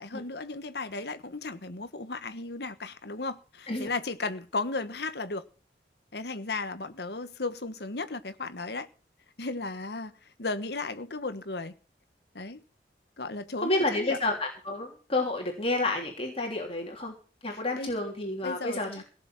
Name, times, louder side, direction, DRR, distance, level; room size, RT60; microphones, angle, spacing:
voice 1, 0.0-5.4 6.1-8.9 9.4-10.1 10.4-11.7 12.3-12.6 13.2-14.2 17.5-17.9 18.4-19.0, left 3 dB, 65° left, 1.3 m, -35 dB
voice 2, 13.6-17.1 17.4-19.0, left 2 dB, 30° left, 3.3 m, -30 dB
17.5 x 6.9 x 7.2 m
head